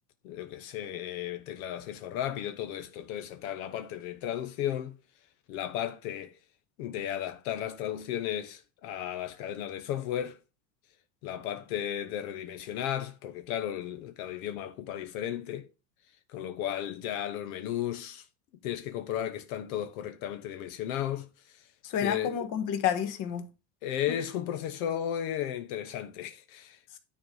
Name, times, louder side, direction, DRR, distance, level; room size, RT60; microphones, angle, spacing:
voice 1, 0.2-5.0 5.5-6.3 6.8-10.4 11.2-15.7 16.3-18.2 18.6-21.7 22.0-22.4 23.8-26.8, left 10 dB, 80° left, 1.2 m, -34 dB
voice 2, 21.8-23.5 24.1-24.2, left 8 dB, 50° left, 1.6 m, -30 dB
10.0 x 4.7 x 5.5 m
cardioid pair, 145°, 42 cm